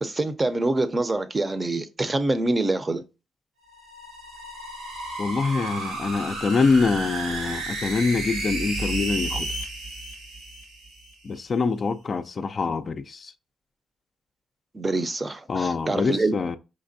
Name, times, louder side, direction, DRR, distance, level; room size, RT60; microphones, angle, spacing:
voice 1, 0.0-3.0 14.7-16.3, right 2 dB, 25° right, 0.6 m, -25 dB
sound 1, 3.7-11.1, right 2 dB, 90° right, 1.7 m, -32 dB
voice 2, 5.2-9.5 11.2-13.3 15.5-16.6, left 4 dB, 40° left, 0.4 m, -25 dB
5.1 x 3.2 x 2.6 m
cardioid pair, 90°, 0 cm